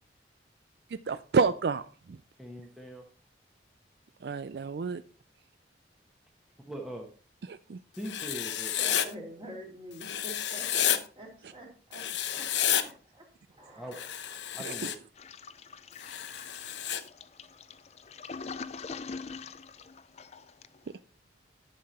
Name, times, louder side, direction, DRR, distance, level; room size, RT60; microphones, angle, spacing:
voice 1, 1.1-2.2 4.2-5.0 7.5-7.8 10.7-10.8 14.6-14.8, right 5 dB, 65° right, 13 dB, 0.4 m, -29 dB
voice 2, 2.4-3.0 6.7-7.1 8.0-8.8 13.8-14.0 14.5-14.9, right 1 dB, ahead, 0 dB, 1.2 m, -41 dB
Writing, 8.0-9.1 10.0-11.0 11.9-12.8 13.9-15.0 16.0-17.0, left 10 dB, 85° left, 0.9 m, -30 dB
voice 3, 8.8-14.4, right 1 dB, 30° right, -1 dB, 3.2 m, -47 dB
Toilet flush, 15.2-20.9, left 4 dB, 35° left, 0.5 m, -44 dB
11.0 x 6.8 x 4.2 m, 0.40 s
head